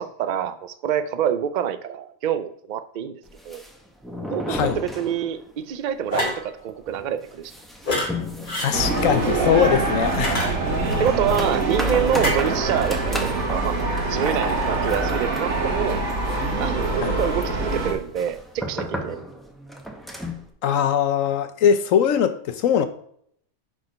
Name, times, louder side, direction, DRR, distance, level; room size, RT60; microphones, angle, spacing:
voice 1, 0.0-3.6 4.3-7.5 11.0-13.8 14.0-16.0 16.6-19.2, right 9 dB, 65° right, 11 dB, 0.4 m, -26 dB
sound 1, 3.3-5.6 5.9-6.0 6.3-6.4 6.9-20.5, equal, ahead, 0.8 m, -35 dB
voice 2, 4.5-4.8 8.6-10.6 17.0-17.2 20.6-22.9, left 8 dB, 70° left, 10 dB, 1.1 m, -21 dB
sound 2, 6.1-6.4 7.8-8.1 8.5-8.7 10.0-11.0 12.1-12.4, left 1 dB, 40° left, 1.7 m, -26 dB
sound 3, 8.7-17.9, right 3 dB, 85° right, 2.3 m, -24 dB
6.3 x 4.8 x 5.2 m, 0.67 s
omnidirectional pair, 1.4 m